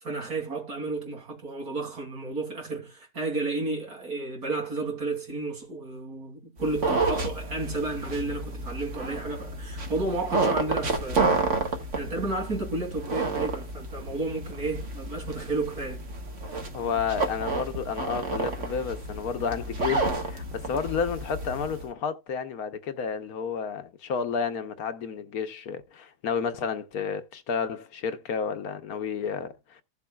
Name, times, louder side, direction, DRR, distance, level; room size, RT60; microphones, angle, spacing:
voice 1, 0.0-16.1, right 2 dB, 80° right, 3.4 m, -32 dB
sound 1, 6.6-21.8, right 3 dB, 55° right, 1.8 m, -30 dB
voice 2, 16.7-29.8, left 6 dB, 75° left, 1.4 m, -31 dB
15.5 x 7.0 x 2.3 m
omnidirectional pair, 1.6 m